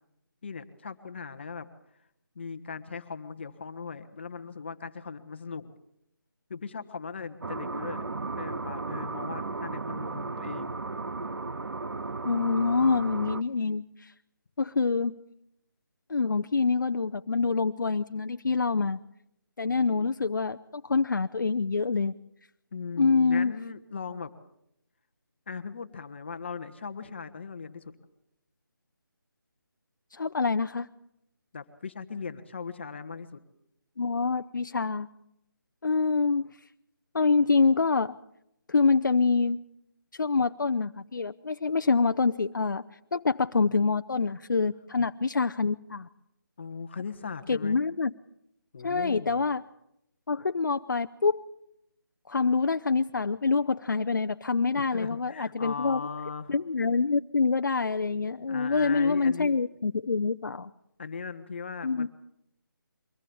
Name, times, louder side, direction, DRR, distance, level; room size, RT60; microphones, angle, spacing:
voice 1, 0.4-1.7 2.3-5.7 6.5-8.0 8.4-10.8 22.7-24.3 25.5-27.9 31.5-33.4 46.6-47.8 48.7-49.4 54.7-56.6 58.5-59.5 61.0-62.1, left 5 dB, 30° left, 10 dB, 1.2 m, -38 dB
sound 1, 7.4-13.4, right 3 dB, 85° right, 0.9 m, -35 dB
voice 2, 12.2-14.1 14.6-15.1 16.1-19.0 19.6-20.6 20.8-22.1 23.0-23.5 30.1-30.9 34.0-35.1 35.8-36.5 37.1-38.1 38.7-39.6 40.2-42.8 43.1-46.1 47.5-48.1 48.8-49.6 50.3-51.4 52.3-56.0 56.5-60.7 61.8-62.1, left 4 dB, 60° left, 9 dB, 0.7 m, -26 dB
23.0 x 18.0 x 7.1 m, 0.80 s
figure-of-eight pair, 170°, 11 cm